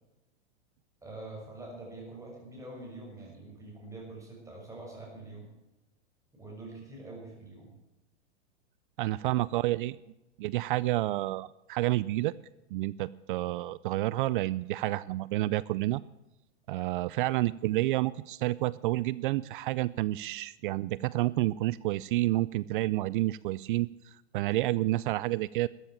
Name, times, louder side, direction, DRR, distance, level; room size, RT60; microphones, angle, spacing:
voice 1, 1.0-5.5 6.3-7.7, right 2 dB, 10° right, -2 dB, 6.2 m, -45 dB
voice 2, 9.0-10.0 10.4-12.3 12.7-16.0 16.7-25.7, right 17 dB, 45° right, 20 dB, 0.4 m, -29 dB
13.5 x 9.9 x 8.7 m, 0.96 s
hypercardioid pair, 140°, 35 cm